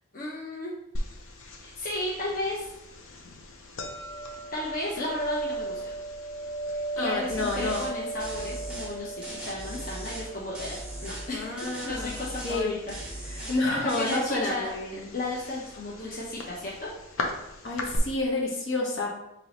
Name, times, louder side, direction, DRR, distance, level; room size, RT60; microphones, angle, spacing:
voice 1, 0.1-0.7 1.6-2.7 4.5-5.8 6.7-10.7 11.0-12.8 13.1-16.9, left 2 dB, 40° left, -5 dB, 0.7 m, -34 dB
sound 1, 0.9-18.0, right 1 dB, 85° left, 0.7 m, -38 dB
voice 2, 7.0-7.8 11.3-12.1 12.4-12.7 13.5-15.1 17.6-19.1, left 2 dB, 65° left, -2 dB, 1.1 m, -29 dB
sound 2, 7.3-7.9 8.2-8.9 9.2-10.3 10.5-11.3 11.6-12.6 12.9-13.6 13.9-14.2, right 1 dB, 5° right, 0.6 m, -39 dB
5.3 x 3.0 x 3.0 m, 0.91 s
head